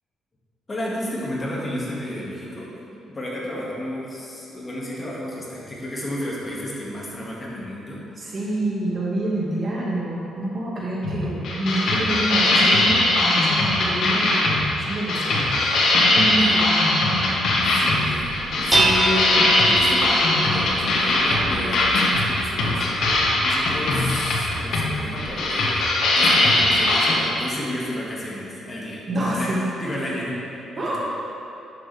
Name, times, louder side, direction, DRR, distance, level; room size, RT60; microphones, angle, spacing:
voice 1, 0.7-2.7 3.1-8.3 16.4-16.5 17.7-29.0 29.3-29.5 29.8-31.0, left 1 dB, 30° left, -5 dB, 2.1 m, -32 dB
voice 2, 8.2-15.6 16.1-17.3 17.6-17.8 29.1-29.6 30.8-31.0, right 1 dB, 40° right, -5 dB, 1.9 m, -27 dB
sound 1, 11.0-27.1, left 2 dB, 65° left, 1.6 m, -20 dB
Dishes pots and pans, 18.2-25.3, right 1 dB, 15° right, 1.1 m, -28 dB
10.5 x 7.0 x 3.5 m, 2.8 s
cardioid pair, 90°, 0 cm